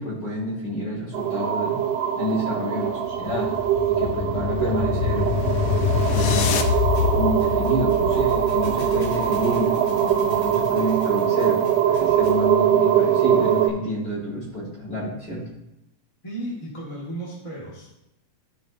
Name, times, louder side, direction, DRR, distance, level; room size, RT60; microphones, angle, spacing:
voice 1, 0.0-1.8 2.1-3.5 3.9-5.7 6.1-6.5 7.1-15.5, equal, 35° left, -5 dB, 3.2 m, -29 dB
sound 1, 1.1-13.7, right 9 dB, 80° right, 2.5 m, -22 dB
sound 2, 2.9-9.3, left 7 dB, 80° left, 1.7 m, -25 dB
Thump thud, 6.9-12.5, left 3 dB, 55° left, 3.6 m, -42 dB
voice 2, 16.2-17.9, right 1 dB, 15° left, -6 dB, 1.5 m, -34 dB
14.5 x 5.0 x 2.9 m, 0.89 s
omnidirectional pair, 3.7 m